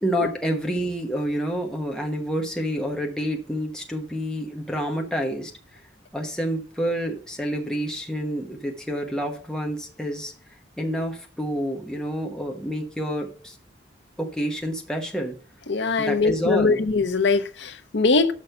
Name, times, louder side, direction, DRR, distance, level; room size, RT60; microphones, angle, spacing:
voice 1, 0.0-5.5 6.1-10.3 10.8-13.6 14.2-15.3 16.0-16.8, equal, 5° left, 1.1 m, -28 dB
voice 2, 15.7-18.3, left 4 dB, 85° left, 0.8 m, -21 dB
6.4 x 5.3 x 6.6 m
head